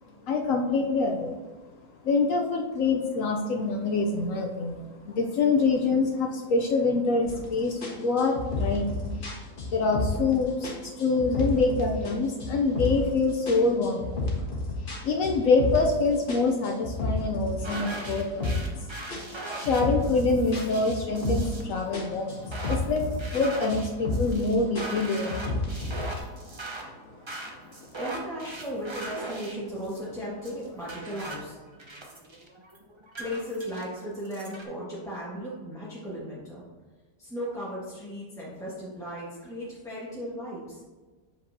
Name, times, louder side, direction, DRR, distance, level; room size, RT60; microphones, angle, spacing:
voice 1, 0.3-1.4 2.0-9.2 9.7-14.2 15.0-18.9 19.2-19.3 19.5-23.0 23.3-25.8, left 3 dB, 70° left, 2 dB, 0.8 m, -26 dB
sound 1, 7.3-7.5 7.8-10.3 10.6-12.1 12.4-13.1 13.5-16.0 16.3-18.8 19.1-21.7 21.9-23.4 23.7-24.4 24.8-26.2, left 2 dB, 35° left, 1.3 m, -31 dB
sound 2, 17.6-34.6, right 2 dB, 45° right, 0.3 m, -40 dB
voice 2, 27.7-31.6 33.2-36.6 37.2-40.8, equal, ahead, -9 dB, 1.1 m, -36 dB
7.3 x 5.5 x 2.7 m, 1.3 s
omnidirectional pair, 1.9 m